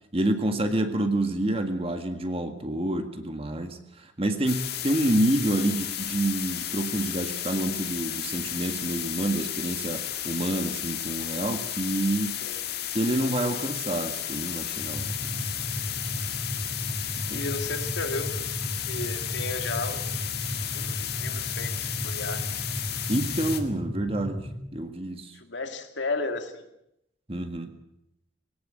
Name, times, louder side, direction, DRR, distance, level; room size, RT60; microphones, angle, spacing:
voice 1, 0.1-12.3 12.9-15.4 17.2-17.4 23.1-24.4 24.7-25.3 27.3-27.7, right 1 dB, 30° right, 7 dB, 1.8 m, -28 dB
sound 1, 4.5-23.6, left 11 dB, 55° left, 2.1 m, -33 dB
sound 2, 14.8-24.6, equal, 10° right, 3.4 m, -35 dB
voice 2, 17.3-18.5 18.9-20.0 20.7-22.4 25.3-26.7, left 3 dB, 75° left, 6 dB, 2.3 m, -34 dB
20.5 x 17.5 x 7.9 m, 0.80 s
head